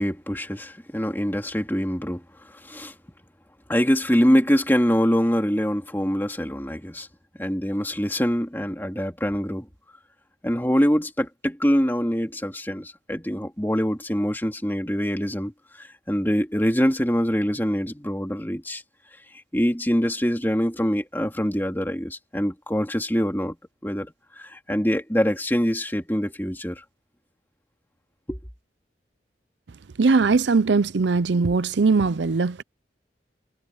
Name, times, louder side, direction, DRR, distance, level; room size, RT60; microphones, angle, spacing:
voice 1, 0.0-2.2 2.5-2.9 3.7-7.1 7.4-9.7 10.4-18.8 19.5-23.6 23.8-26.8 28.3-28.4, equal, 10° left, 2.8 m, -24 dB
voice 2, 30.0-32.6, right 4 dB, 75° right, 0.6 m, -20 dB
head